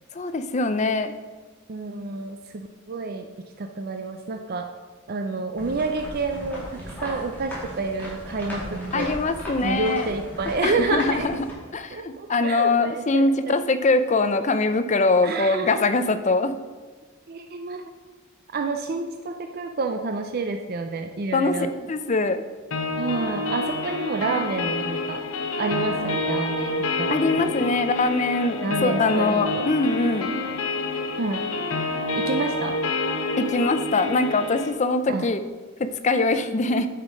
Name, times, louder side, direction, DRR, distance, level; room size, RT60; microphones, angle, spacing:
voice 1, 0.1-1.1 8.9-10.1 10.6-11.5 11.7-16.6 21.3-21.6 21.9-22.4 27.1-30.4 33.4-35.4 35.8-36.9, left 3 dB, 35° left, 10 dB, 0.5 m, -23 dB
voice 2, 1.7-3.3 3.6-4.7 5.1-9.1 9.6-11.3 11.9-13.6 15.2-15.8 17.3-17.8 18.5-21.7 23.0-25.2 25.6-27.7 28.6-29.6 31.2-31.5 32.2-32.8 35.1-35.2, right 3 dB, 45° right, 5 dB, 0.5 m, -29 dB
sound 1, 5.6-11.5, equal, 10° left, 2.5 m, -36 dB
sound 2, 22.7-34.7, left 3 dB, 80° left, 0.9 m, -28 dB
9.2 x 5.8 x 5.0 m, 1.4 s
head